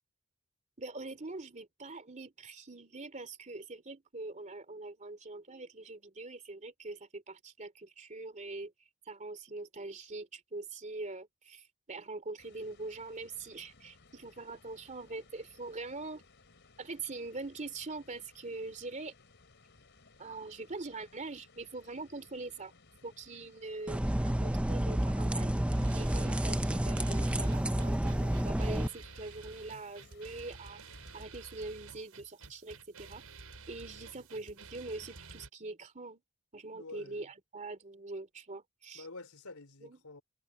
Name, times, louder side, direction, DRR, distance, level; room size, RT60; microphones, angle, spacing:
voice 1, 0.8-8.7 9.1-16.2 16.8-19.1 20.2-22.7 23.0-25.6 25.9-30.8 31.1-33.2 33.7-36.2 36.5-39.1 39.8-40.0, right 3 dB, 35° right, 2.6 m, -43 dB
sound 1, 12.4-31.3, left 3 dB, 55° left, 4.5 m, -62 dB
sound 2, 23.9-28.9, right 1 dB, 5° right, 0.5 m, -30 dB
sound 3, 25.7-35.5, right 4 dB, 85° right, 5.5 m, -51 dB
voice 2, 36.7-37.3 38.9-40.2, left 3 dB, 85° left, 3.6 m, -48 dB
head